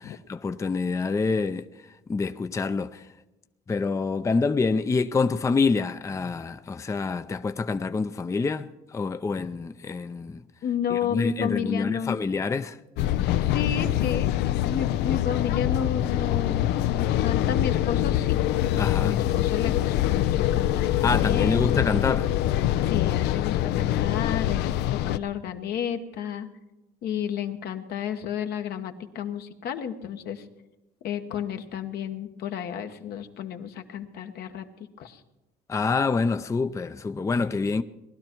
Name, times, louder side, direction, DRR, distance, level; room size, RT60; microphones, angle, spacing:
voice 1, 0.0-1.7 2.1-3.1 3.7-10.4 10.9-12.8 18.8-19.2 21.0-22.3 35.7-37.8, left 4 dB, 20° left, 0.5 m, -26 dB
voice 2, 10.6-12.2 13.4-14.3 14.6-18.4 18.9-21.7 22.8-26.5 27.0-30.4 31.0-34.6 35.0-35.2, left 8 dB, 70° left, 1.2 m, -32 dB
sound 1, 13.0-25.2, left 13 dB, 90° left, 0.5 m, -24 dB
19.5 x 12.0 x 4.5 m
cardioid pair, 110°, 17 cm